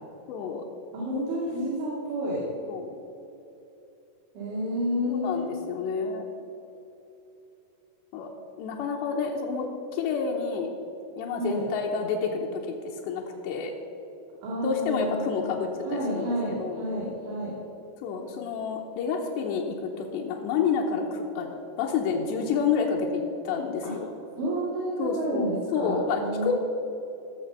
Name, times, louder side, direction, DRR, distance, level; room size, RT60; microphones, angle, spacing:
voice 1, 0.3-0.6 2.7-2.9 5.1-6.3 8.1-8.3 8.6-10.7 11.2-13.7 14.6-16.8 18.0-24.1 25.0-26.5, left 5 dB, 80° left, 0 dB, 3.0 m, -29 dB
voice 2, 0.9-2.4 4.3-5.6 11.4-11.7 14.4-15.5 15.8-17.6 23.8-23.9 24.4-26.5, equal, 85° right, -7 dB, 4.6 m, -30 dB
16.5 x 6.8 x 5.5 m, 2.9 s
omnidirectional pair, 5.0 m